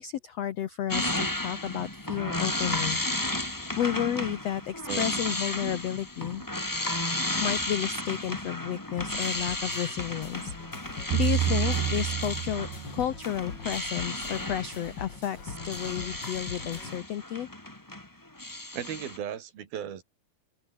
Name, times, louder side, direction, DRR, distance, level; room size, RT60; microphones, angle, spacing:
voice 1, 0.0-3.0 3.8-6.4 7.4-10.9 11.1-12.7 12.9-17.5, left 10 dB, 80° left, 1.4 m, -32 dB
sound 1, 0.9-18.1 18.4-19.2, left 1 dB, 15° left, 0.7 m, -33 dB
voice 2, 4.9-5.3 5.6-5.8 18.7-20.0, right 9 dB, 70° right, 4.6 m, -36 dB
sound 2, 9.0-17.0, left 6 dB, 40° left, 2.0 m, -42 dB
sound 3, 11.1-13.5, right 14 dB, 85° right, 3.3 m, -29 dB
open air
omnidirectional pair, 4.5 m